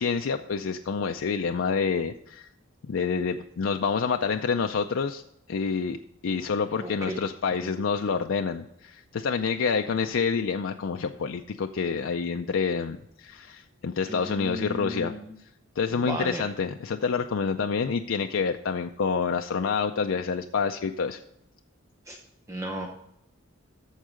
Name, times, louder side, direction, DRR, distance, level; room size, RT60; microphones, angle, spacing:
voice 1, 0.0-2.5 2.9-5.2 5.5-6.0 6.2-15.1 15.8-21.2, left 5 dB, 70° left, 5 dB, 0.4 m, -28 dB
voice 2, 6.8-7.3 7.6-7.7 14.1-15.3 15.9-16.4 22.1-22.2 22.5-22.9, right 1 dB, 15° right, 1 dB, 0.7 m, -35 dB
14.0 x 4.7 x 5.0 m, 0.77 s
head